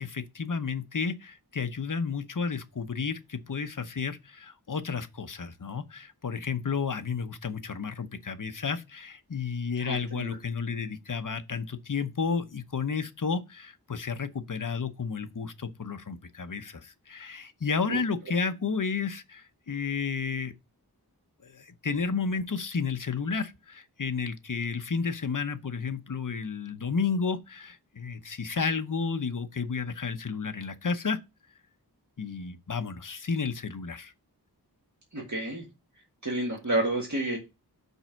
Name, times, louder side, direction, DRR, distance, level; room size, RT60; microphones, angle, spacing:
voice 1, 0.0-20.5 21.4-31.2 32.2-34.1, left 5 dB, 55° left, 0.8 m, -32 dB
voice 2, 9.8-10.4 17.9-18.0 35.1-35.6 36.2-37.4, right 1 dB, 45° right, 1.8 m, -30 dB
5.5 x 4.3 x 5.7 m
wide cardioid pair, 55°, 39 cm